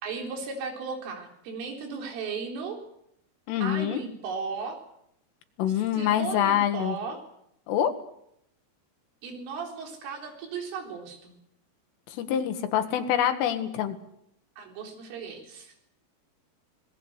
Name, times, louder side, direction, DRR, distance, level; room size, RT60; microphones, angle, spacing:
voice 1, 0.0-2.8 3.6-4.8 5.9-7.2 9.2-11.3 14.6-15.7, right 5 dB, 85° right, 3 dB, 6.5 m, -36 dB
voice 2, 3.5-4.0 5.6-7.0 7.7-7.9 12.1-14.0, left 10 dB, 90° left, 7 dB, 4.4 m, -25 dB
26.0 x 19.5 x 8.2 m, 0.76 s
omnidirectional pair, 5.6 m